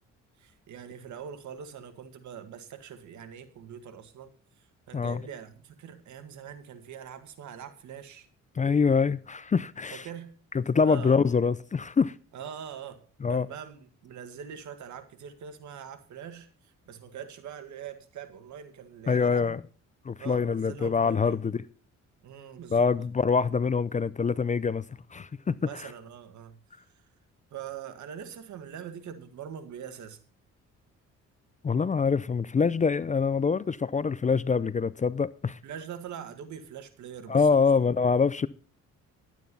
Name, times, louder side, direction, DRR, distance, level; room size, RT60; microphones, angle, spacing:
voice 1, 0.4-4.3 4.6-8.3 9.9-10.3 10.8-11.2 12.3-13.0 13.3-19.5 20.2-21.4 22.2-22.9 25.6-26.6 27.5-30.2 35.6-37.7, right 8 dB, 70° right, 1.9 m, -43 dB
voice 2, 8.6-10.1 10.5-12.1 13.2-13.5 19.1-19.6 20.1-21.6 22.7-24.8 25.1-25.9 31.6-35.6 37.3-38.5, left 5 dB, 25° left, 0.5 m, -25 dB
11.5 x 9.2 x 5.4 m
cardioid pair, 90°, 30 cm